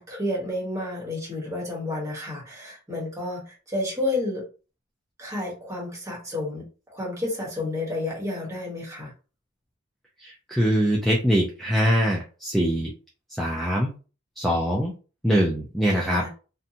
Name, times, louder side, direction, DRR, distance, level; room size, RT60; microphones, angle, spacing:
voice 1, 0.0-4.4 5.2-9.1 15.9-16.3, left 2 dB, 15° right, -3 dB, 1.1 m, -31 dB
voice 2, 10.2-12.9 13.4-13.9 14.4-14.9 15.2-16.2, equal, ahead, -3 dB, 0.4 m, -23 dB
2.6 x 2.1 x 2.7 m, 0.35 s
head